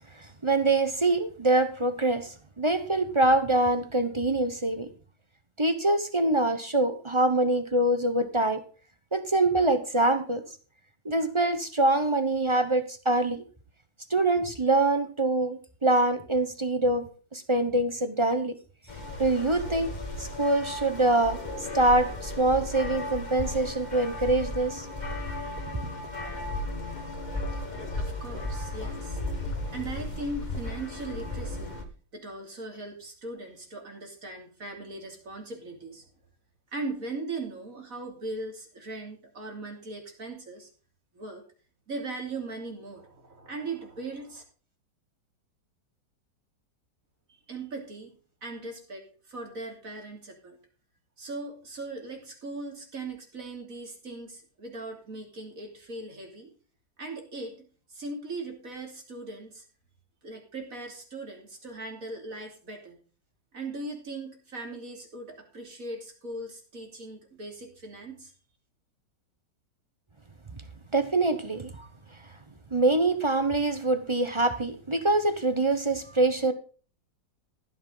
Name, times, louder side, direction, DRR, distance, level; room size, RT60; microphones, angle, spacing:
voice 1, 0.4-4.9 5.6-8.6 9.1-10.4 11.0-13.4 14.1-18.5 19.2-19.9 20.2-21.4 21.7-24.9 70.9-71.9 72.7-76.5, right 2 dB, 25° right, 10 dB, 0.7 m, -24 dB
sound 1, 18.9-31.8, left 2 dB, 25° left, 2.0 m, -35 dB
voice 2, 28.0-29.2 29.7-31.8 32.1-36.0 36.7-40.7 41.1-41.4 41.9-44.4 47.5-48.1 48.4-50.6 51.2-56.5 57.0-59.6 60.2-63.0 63.5-68.3, right 2 dB, 50° right, 2 dB, 3.4 m, -39 dB
15.5 x 9.5 x 4.0 m, 0.38 s
omnidirectional pair, 1.9 m